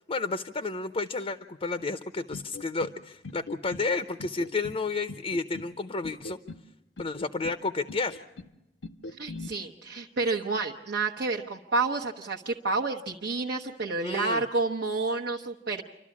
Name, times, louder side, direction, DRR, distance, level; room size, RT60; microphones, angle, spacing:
voice 1, 0.1-6.4 7.0-8.2 14.0-14.4, left 3 dB, 35° left, 10 dB, 0.7 m, -31 dB
sound 1, 2.3-3.0 3.2-3.9 4.2-4.8 5.1-5.7 6.0-6.7 7.0-7.6 7.9-8.5 8.8-9.5, left 3 dB, 80° left, 0.8 m, -41 dB
voice 2, 9.1-15.8, right 3 dB, 65° right, -1 dB, 1.0 m, -29 dB
28.0 x 12.5 x 8.4 m, 0.94 s
head